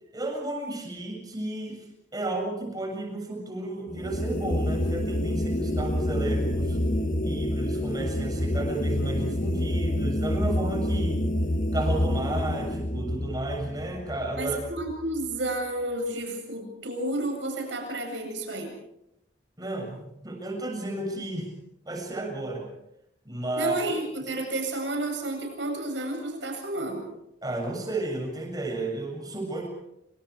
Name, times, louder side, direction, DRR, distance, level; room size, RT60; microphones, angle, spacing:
voice 1, 0.1-1.8 2.1-6.8 7.2-11.2 11.7-14.6 19.6-21.5 21.8-22.7 23.2-23.8 27.4-29.7, right 2 dB, 20° right, 1 dB, 7.2 m, -33 dB
sound 1, 3.9-15.2, left 1 dB, 45° left, 1.6 m, -28 dB
voice 2, 14.4-18.7 23.6-27.1, right 2 dB, 90° right, 3 dB, 8.0 m, -31 dB
28.5 x 26.0 x 4.8 m, 0.85 s
head